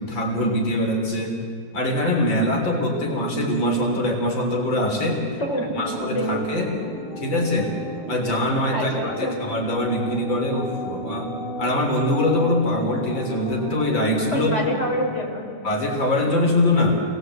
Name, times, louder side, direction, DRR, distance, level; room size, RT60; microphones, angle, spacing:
voice 1, 0.0-1.3 1.7-5.2 5.8-6.7 7.2-7.7 8.1-11.3 11.6-14.5 15.6-16.9, left 1 dB, 90° left, 1 dB, 4.1 m, -23 dB
voice 2, 5.4-5.8 6.1-6.4 8.7-9.3 14.3-15.5, equal, 35° left, -1 dB, 5.3 m, -26 dB
sound 1, 5.8-14.8, right 1 dB, 45° right, 7.2 m, -34 dB
29.5 x 21.0 x 8.1 m, 2.4 s
omnidirectional pair, 2.0 m